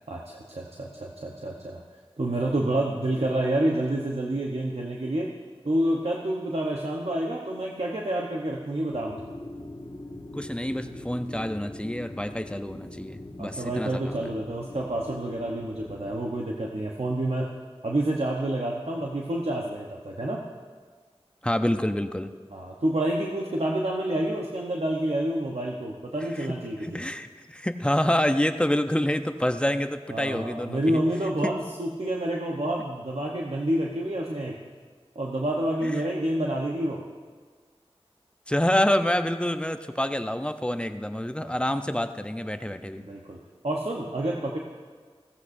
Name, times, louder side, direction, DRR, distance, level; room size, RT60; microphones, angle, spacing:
voice 1, 0.1-1.8 2.2-5.3 5.6-9.3 13.4-17.5 17.8-20.4 22.5-27.0 30.1-34.6 35.1-37.0 41.4-41.5 43.0-43.4 43.6-44.6, right 1 dB, 80° right, -2 dB, 1.0 m, -28 dB
sound 1, 8.9-16.2, left 1 dB, 55° left, 1.4 m, -42 dB
voice 2, 10.3-14.3 21.4-22.3 26.4-26.5 26.8-31.0 31.4-31.5 35.8-35.9 38.5-43.0, left 1 dB, 10° left, 8 dB, 0.6 m, -27 dB
16.0 x 14.5 x 2.6 m, 1.5 s
wide cardioid pair, 40°, 10 cm